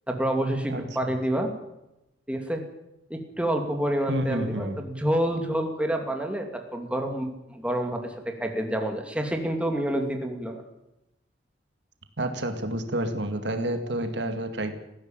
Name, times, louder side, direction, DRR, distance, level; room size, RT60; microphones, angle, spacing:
voice 1, 0.1-1.5 2.3-2.6 3.1-6.5 6.7-10.6, right 1 dB, 5° right, 3 dB, 2.6 m, -28 dB
voice 2, 0.7-1.1 4.1-4.8 12.2-14.7, right 1 dB, 70° right, 7 dB, 2.2 m, -29 dB
18.5 x 15.5 x 8.9 m, 0.91 s
head